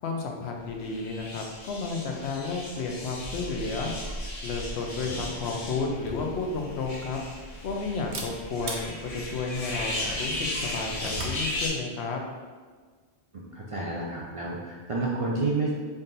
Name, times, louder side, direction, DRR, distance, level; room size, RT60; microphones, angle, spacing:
voice 1, 0.0-3.9 4.4-7.2 7.6-12.2, left 4 dB, 80° left, 2 dB, 0.9 m, -32 dB
sound 1, 0.8-11.7, left 1 dB, 40° left, 0.7 m, -36 dB
Camera, 5.9-11.4, right 2 dB, 65° right, 0.8 m, -42 dB
voice 2, 13.3-15.7, right 3 dB, 45° right, -5 dB, 0.4 m, -30 dB
3.7 x 2.7 x 3.8 m, 1.5 s
omnidirectional pair, 1.1 m